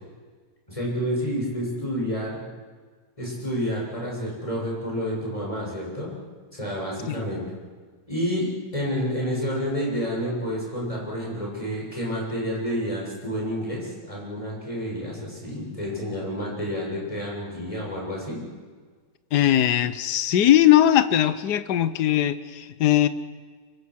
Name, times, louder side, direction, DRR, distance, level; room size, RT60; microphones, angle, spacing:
voice 1, 0.7-2.4 3.2-6.1 6.5-7.4 8.1-18.4, equal, 20° left, -3 dB, 7.3 m, -29 dB
voice 2, 19.3-23.1, left 12 dB, 70° left, 13 dB, 1.5 m, -20 dB
25.5 x 23.5 x 6.5 m, 1.5 s
omnidirectional pair, 1.9 m